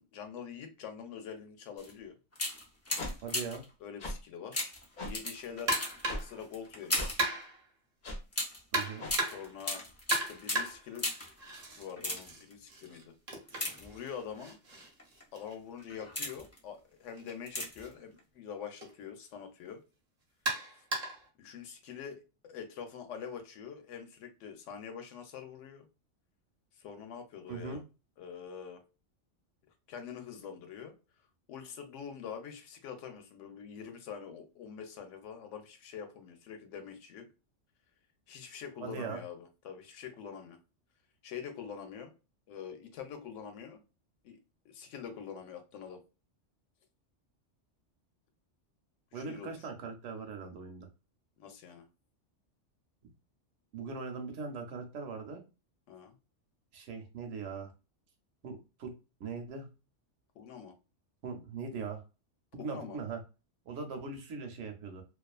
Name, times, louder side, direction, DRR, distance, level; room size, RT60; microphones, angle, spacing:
voice 1, 0.0-2.1 3.8-4.7 5.0-5.8 6.1-7.1 9.2-9.9 10.3-11.1 11.8-13.1 13.8-14.6 15.3-19.8 21.4-25.9 26.8-27.8 28.2-28.8 29.9-30.9 31.5-37.3 38.3-40.6 41.2-42.1 42.5-43.8 44.2-44.4 44.7-46.0 49.1-49.6 51.4-51.8 55.9-56.1 60.4-60.7 62.6-63.0, left 7 dB, 85° left, 6 dB, 0.9 m, -45 dB
sound 1, 1.8-1.9 2.3-3.7 4.5-7.3 8.3-11.4 11.9-12.5 13.5-14.3 15.0-15.2 15.8-16.6 17.5-17.9 18.2-18.3, left 1 dB, 25° left, 0.3 m, -37 dB
sound 2, 3.0-3.1 4.0-4.2 5.0-5.1 6.1-6.2 6.9-7.1 8.0-8.2 9.0-9.1, left 1 dB, 50° left, 0.7 m, -37 dB
voice 2, 3.2-3.6 8.7-9.0 27.5-27.8 38.8-39.2 49.1-50.9 53.7-55.4 56.7-57.7 58.4-58.9 59.2-59.7 61.2-62.0 62.5-63.2 63.7-65.0, right 5 dB, 75° right, 4 dB, 0.9 m, -40 dB
sound 3, 5.7-6.4 7.2-7.7 8.7-9.6 10.1-11.9 12.2-16.1 17.1-17.3 17.8-17.9 18.8-18.9 20.5-21.3, right 2 dB, 40° right, 0.7 m, -36 dB
2.4 x 2.4 x 2.3 m, 0.30 s
omnidirectional pair, 1.2 m